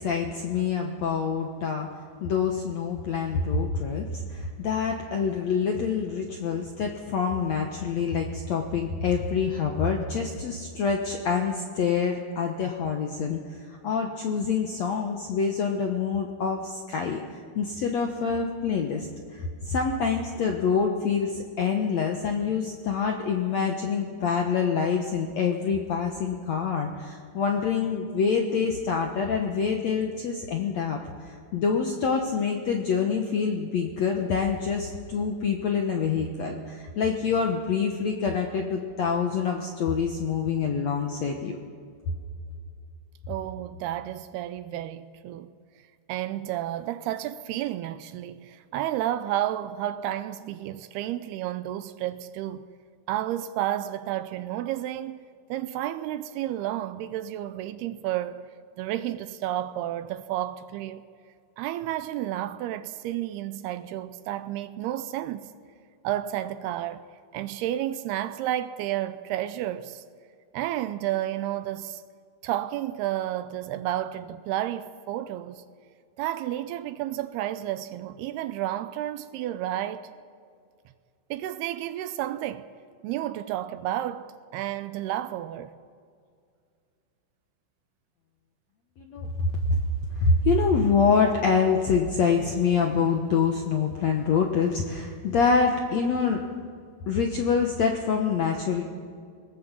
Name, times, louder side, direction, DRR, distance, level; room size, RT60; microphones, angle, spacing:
voice 1, 0.0-1.9 2.2-19.1 19.3-31.0 31.2-41.6 89.0-89.8 90.1-96.4 97.1-98.8, left 5 dB, 70° left, 1.7 m, -26 dB
voice 2, 43.3-45.5 46.1-52.7 53.1-55.2 55.5-58.4 58.8-61.1 61.6-65.5 66.0-67.1 67.3-70.0 70.5-72.0 72.4-75.6 76.2-80.1 81.3-82.6 83.0-85.7, right 13 dB, 80° right, 2.5 m, -31 dB
21.0 x 19.5 x 7.5 m
omnidirectional pair, 4.8 m